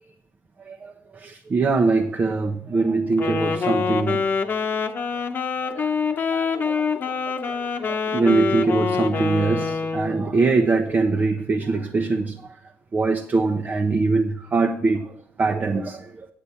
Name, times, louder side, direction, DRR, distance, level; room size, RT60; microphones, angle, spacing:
voice 1, 0.6-4.3 5.6-12.6 12.9-16.3, right 3 dB, 35° right, 0.9 m, -23 dB
Wind instrument woodwind instrument, 3.1-10.3, left 5 dB, 40° left, 1.1 m, -25 dB
8.4 x 8.2 x 5.7 m
cardioid pair, 90°, 5 cm